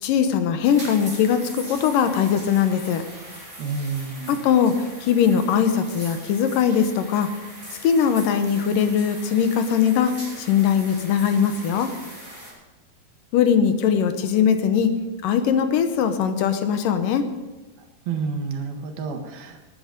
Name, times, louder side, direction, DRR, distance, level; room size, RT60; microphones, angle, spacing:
voice 1, 0.0-3.0 4.3-7.3 7.8-11.9 13.3-15.0 15.2-17.2, left 7 dB, 75° left, 8 dB, 2.4 m, -20 dB
sound 1, 0.6-12.5, equal, 10° right, 6.2 m, -40 dB
voice 2, 3.6-4.4 18.1-19.6, right 5 dB, 85° right, 4 dB, 3.5 m, -29 dB
19.5 x 10.0 x 5.1 m, 1.1 s
omnidirectional pair, 4.2 m